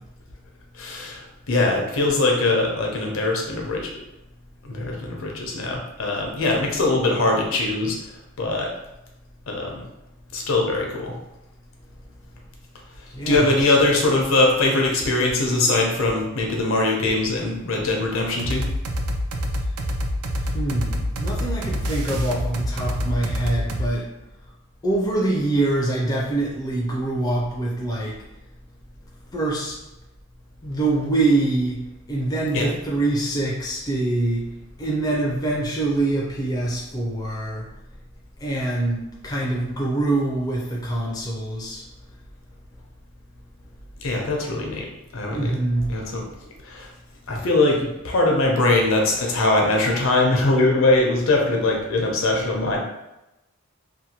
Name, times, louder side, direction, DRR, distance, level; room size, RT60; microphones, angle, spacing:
voice 1, 0.8-3.9 4.6-8.0 8.4-8.7 9.5-9.8 10.3-11.1 13.3-18.6 32.5-32.7 44.0-44.9 45.1-46.3 46.6-46.9 47.3-52.8, left 2 dB, 70° left, 0 dB, 0.6 m, -21 dB
voice 2, 13.1-13.6 20.5-24.1 24.8-28.2 29.3-29.7 30.6-34.5 34.8-37.6 38.4-41.8 45.3-45.9, right 2 dB, 15° left, -4 dB, 0.3 m, -24 dB
sound 1, 18.4-23.9, equal, 90° right, 0.4 m, -26 dB
2.7 x 2.2 x 2.8 m, 0.93 s
head